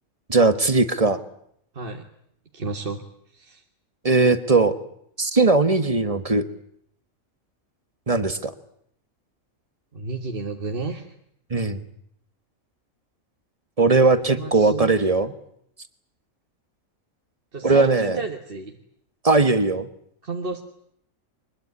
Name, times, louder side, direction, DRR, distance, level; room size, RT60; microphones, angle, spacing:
voice 1, 0.3-1.2 4.0-4.7 5.2-6.4 8.1-8.5 11.5-11.8 13.8-15.3 17.6-18.2 19.2-19.9, right 3 dB, 25° right, 11 dB, 1.4 m, -19 dB
voice 2, 1.7-2.1 2.5-3.0 3.3-3.6 9.9-11.1 14.3-15.1 17.5-18.8 20.2-20.6, right 3 dB, 40° right, 4 dB, 1.7 m, -32 dB
23.5 x 21.5 x 9.7 m, 0.71 s
omnidirectional pair, 1.4 m